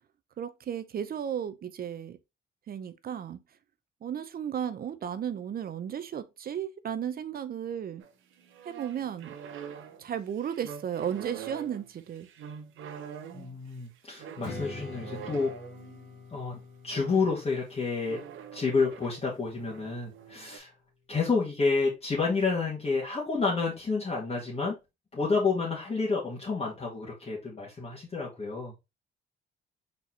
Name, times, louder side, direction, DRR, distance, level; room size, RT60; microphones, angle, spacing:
voice 1, 0.4-2.2 2.7-3.4 4.0-8.0 8.6-9.4 10.0-12.3, right 9 dB, 50° right, 0.6 m, -34 dB
sound 1, 8.0-16.1 16.9-17.3 18.1-19.2 19.5-20.6, right 8 dB, 80° right, 0.8 m, -45 dB
voice 2, 13.3-15.5 16.3-18.2 18.5-20.7 21.1-24.8 25.1-28.7, left 4 dB, 30° left, 1.7 m, -29 dB
Strum, 14.4-19.6, left 3 dB, 80° left, 2.6 m, -45 dB
4.4 x 4.1 x 2.7 m
cardioid pair, 90°, 20 cm